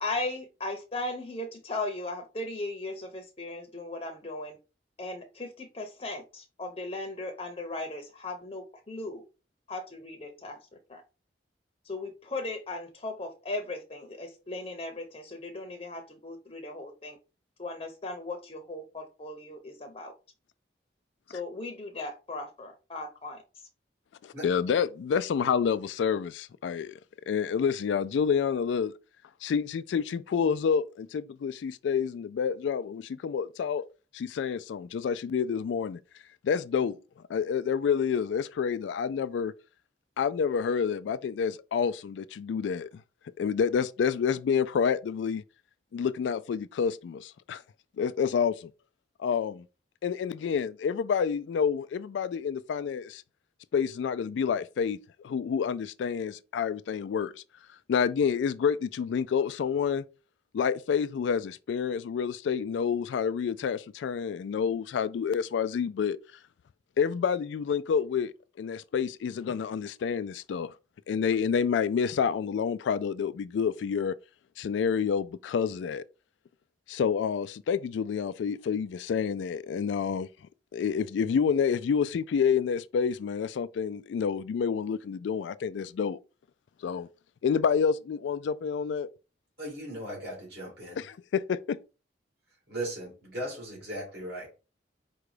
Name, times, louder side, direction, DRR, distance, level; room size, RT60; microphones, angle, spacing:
voice 1, 0.0-4.6 5.0-9.2 9.7-10.6 10.9-11.0 11.8-17.2 17.6-20.1 21.3-23.7, left 2 dB, 30° left, 0.7 m, -37 dB
voice 2, 24.2-27.0 27.3-28.9 29.4-33.8 34.1-36.0 36.4-37.0 37.3-39.5 40.2-42.9 43.4-45.4 45.9-47.6 48.0-48.7 49.2-49.6 50.0-53.2 53.7-55.0 55.2-57.4 57.9-60.0 60.5-66.2 67.0-70.7 71.1-74.2 74.6-76.0 76.9-80.3 80.7-86.2 86.8-87.1 87.4-89.1 91.0-91.8, left 6 dB, 85° left, 0.3 m, -28 dB
voice 3, 89.6-91.0 92.7-94.6, right 1 dB, 60° right, 2.5 m, -37 dB
4.9 x 2.2 x 4.8 m
head